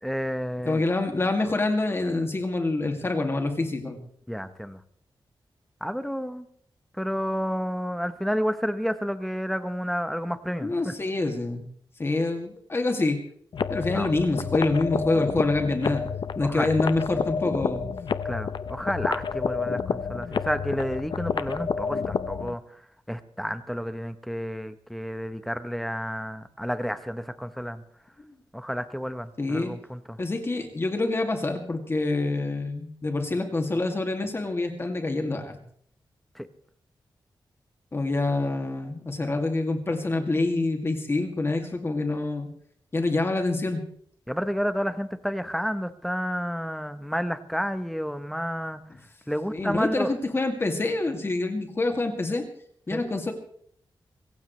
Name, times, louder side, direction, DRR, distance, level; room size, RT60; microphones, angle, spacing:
voice 1, 0.0-0.9 4.3-4.8 5.8-6.5 6.9-11.0 13.9-14.1 16.4-16.7 18.2-22.8 23.1-27.8 28.5-30.2 36.3-36.5 44.3-48.8 49.3-50.1 52.9-53.0, equal, ahead, 10 dB, 0.9 m, -30 dB
voice 2, 0.7-4.0 10.6-11.6 12.0-13.2 13.7-16.0 16.4-17.8 29.4-29.7 30.2-35.6 37.9-42.5 42.9-43.8 49.5-52.4 52.9-53.3, left 2 dB, 30° left, 4 dB, 2.3 m, -26 dB
sound 1, 13.5-22.5, left 6 dB, 65° left, 0.8 m, -30 dB
25.0 x 15.5 x 3.2 m, 0.62 s
wide cardioid pair, 155°, 9 cm